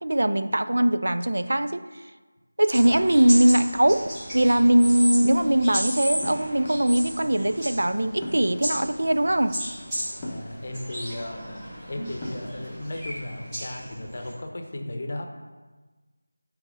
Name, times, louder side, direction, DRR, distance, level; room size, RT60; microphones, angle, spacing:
voice 1, 0.0-1.9 2.6-9.6, right 1 dB, 70° right, 10 dB, 0.4 m, -21 dB
sound 1, 2.7-14.3, equal, 10° right, 1.5 m, -35 dB
sound 2, 6.2-6.5 8.2-8.6 10.2-10.5 12.2-12.6, left 1 dB, 10° left, 0.8 m, -35 dB
voice 2, 10.2-11.4 11.9-15.2, left 1 dB, 45° left, 3 dB, 0.7 m, -35 dB
8.8 x 3.0 x 3.8 m, 1.3 s
figure-of-eight pair, 170°, 0 cm